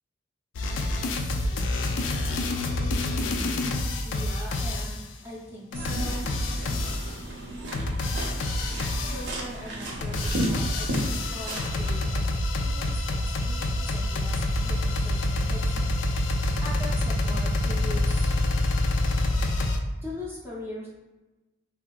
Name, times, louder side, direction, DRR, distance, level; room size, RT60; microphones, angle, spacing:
sound 1, 0.6-5.1 5.7-7.2 7.7-9.4 9.9-19.8, left 2 dB, 70° left, 0.3 m, -27 dB
voice 1, 4.0-5.0 5.2-6.3 9.0-16.0 16.6-18.3 20.0-20.9, left 1 dB, 10° right, -5 dB, 0.5 m, -41 dB
sound 2, 5.7-11.9, right 1 dB, 65° right, 0.6 m, -33 dB
3.4 x 2.4 x 2.2 m, 1.1 s
head